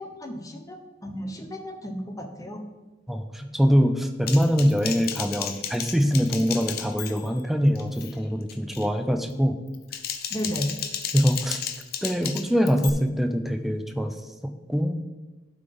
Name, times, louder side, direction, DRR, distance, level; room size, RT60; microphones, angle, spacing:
voice 1, 0.0-2.6 10.3-10.7, equal, 20° left, 4 dB, 0.9 m, -33 dB
voice 2, 3.1-9.6 11.1-11.6 12.0-14.1 14.4-14.9, equal, ahead, 6 dB, 0.6 m, -23 dB
Typing, 4.3-7.4 7.8-8.1 8.5-8.9 9.7-12.9, left 8 dB, 55° left, 0.7 m, -33 dB
12.0 x 4.0 x 5.3 m, 1.1 s
head